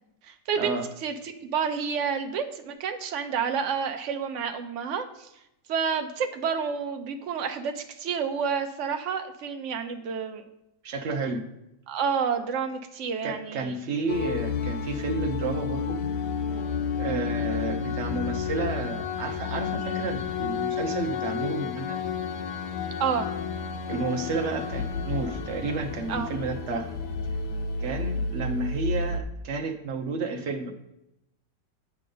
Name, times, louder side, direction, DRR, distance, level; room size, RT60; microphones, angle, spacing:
voice 1, 0.2-0.8 1.0-5.3 5.7-10.4 11.9-13.7 17.1-17.3 23.0-23.3 26.1-26.3, right 6 dB, 75° right, 7 dB, 0.6 m, -29 dB
voice 2, 10.8-11.4 13.2-16.0 17.0-22.0 23.9-26.9 27.8-30.7, right 3 dB, 55° right, 4 dB, 0.8 m, -31 dB
sound 1, 14.1-29.2, left 5 dB, 75° left, 1.2 m, -31 dB
9.3 x 5.2 x 3.8 m, 0.86 s
omnidirectional pair, 1.9 m